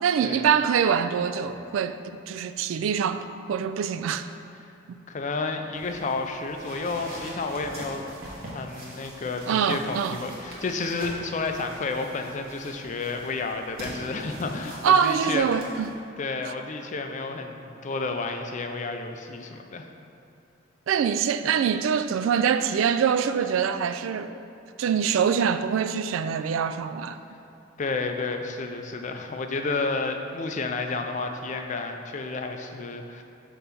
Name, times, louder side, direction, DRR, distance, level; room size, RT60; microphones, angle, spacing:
voice 1, 0.0-4.3 4.9-5.0 9.5-10.2 14.8-15.9 20.9-24.3 24.8-27.2, right 7 dB, 75° right, 0.3 m, -24 dB
voice 2, 5.1-8.0 8.5-15.5 16.2-19.9 27.8-33.2, left 3 dB, 35° left, 0.4 m, -31 dB
sound 1, 5.7-15.9, equal, 50° right, 1.4 m, -42 dB
5.5 x 4.0 x 5.9 m
head